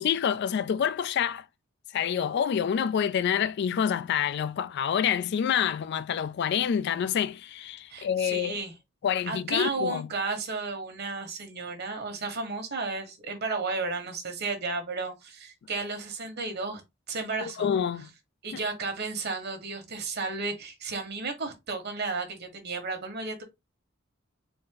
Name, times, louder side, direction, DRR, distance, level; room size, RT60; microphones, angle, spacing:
voice 1, 0.0-1.4 1.9-8.5 9.0-10.1 17.4-18.1 18.5-18.6, left 8 dB, 55° left, 0.3 m, -27 dB
voice 2, 7.9-8.7 9.3-16.8 17.1-17.7 18.4-23.4, right 3 dB, 55° right, 1.3 m, -33 dB
4.1 x 2.5 x 3.7 m
head